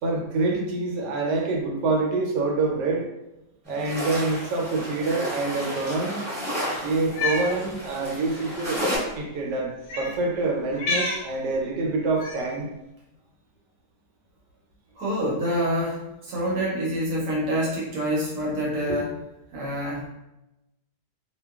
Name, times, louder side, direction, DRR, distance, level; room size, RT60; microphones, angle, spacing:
voice 1, 0.0-3.0 3.7-6.2 6.8-8.8 9.1-12.7, right 3 dB, 85° right, 0 dB, 1.2 m, -26 dB
sound 1, 3.7-9.0, equal, 30° right, 0.7 m, -32 dB
Cat, 7.0-7.5 8.5-8.7 9.8-10.1 10.7-11.2 12.2-12.5, left 3 dB, 65° left, 0.9 m, -28 dB
voice 2, 15.0-19.1 19.5-20.1, equal, 65° right, -4 dB, 1.0 m, -27 dB
2.7 x 2.2 x 2.3 m, 0.93 s
omnidirectional pair, 1.8 m